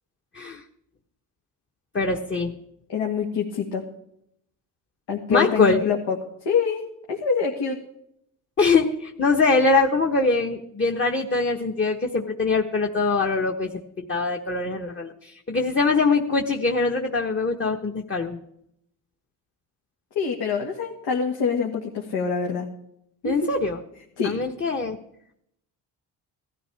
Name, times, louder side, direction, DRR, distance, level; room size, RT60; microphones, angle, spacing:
voice 1, 1.9-2.5 5.3-5.8 8.6-13.7 14.0-18.4 23.2-23.8 24.2-25.0, left 3 dB, 30° left, 2 dB, 1.3 m, -23 dB
voice 2, 2.9-3.8 5.1-6.2 6.4-6.8 7.1-7.8 20.2-22.7 23.2-23.5 24.2-24.3, left 6 dB, 75° left, 0 dB, 2.1 m, -25 dB
18.0 x 13.0 x 3.5 m, 0.74 s
cardioid pair, 90°, 41 cm